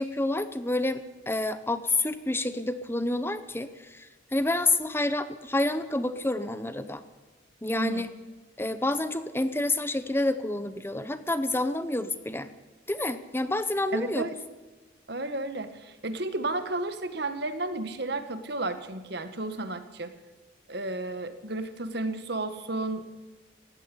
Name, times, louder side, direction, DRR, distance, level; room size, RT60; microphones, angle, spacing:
voice 1, 0.0-7.0 7.6-8.1 8.6-12.5 12.9-14.2, left 2 dB, 10° left, 12 dB, 0.8 m, -28 dB
voice 2, 7.8-8.1 13.9-14.4 15.1-20.1 20.7-23.1, right 2 dB, 55° right, 10 dB, 1.6 m, -32 dB
17.5 x 16.0 x 10.0 m, 1.2 s
head